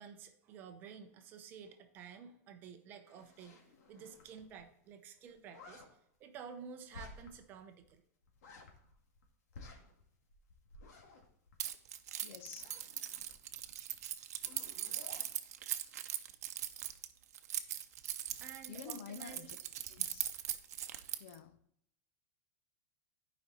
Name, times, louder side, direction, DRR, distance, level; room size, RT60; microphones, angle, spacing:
voice 1, 0.0-3.6 3.9-5.8 6.2-8.0 17.7-17.8 18.4-19.5, right 6 dB, 20° right, 0.7 m, -51 dB
sound 1, 3.1-4.6 4.8-4.9 5.2-5.9 6.9-7.5 7.8-7.9 8.2-9.2 9.5-12.0 12.4-14.0 14.3-15.3, left 3 dB, 80° left, 2.0 m, -55 dB
Keys jangling, 11.6-21.4, right 11 dB, 75° right, 0.7 m, -40 dB
voice 2, 12.2-12.7 18.7-19.6 19.9-20.3 21.2-21.6, left 7 dB, 50° left, 0.6 m, -49 dB
11.0 x 5.1 x 4.2 m
supercardioid pair, 180°, 9 cm